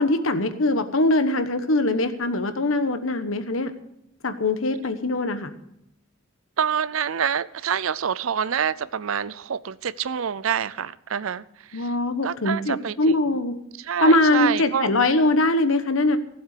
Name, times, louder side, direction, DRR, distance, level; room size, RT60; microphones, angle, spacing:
voice 1, 0.0-3.7 4.2-5.5 11.7-13.6 14.0-16.2, left 2 dB, 75° left, 1.2 m, -22 dB
voice 2, 6.6-11.9 12.2-13.2 13.8-14.9, right 7 dB, 75° right, 0.5 m, -27 dB
16.0 x 7.9 x 6.7 m
head